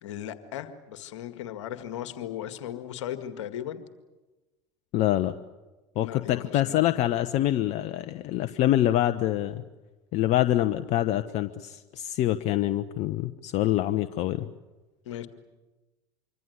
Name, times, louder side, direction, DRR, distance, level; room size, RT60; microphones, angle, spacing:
voice 1, 0.0-3.8 6.0-6.8 15.1-15.3, left 11 dB, 75° left, 10 dB, 2.0 m, -37 dB
voice 2, 4.9-5.3 6.0-9.6 10.1-14.5, left 13 dB, 55° left, 11 dB, 1.0 m, -25 dB
25.5 x 25.0 x 8.1 m, 1.1 s
hypercardioid pair, 75°, 15 cm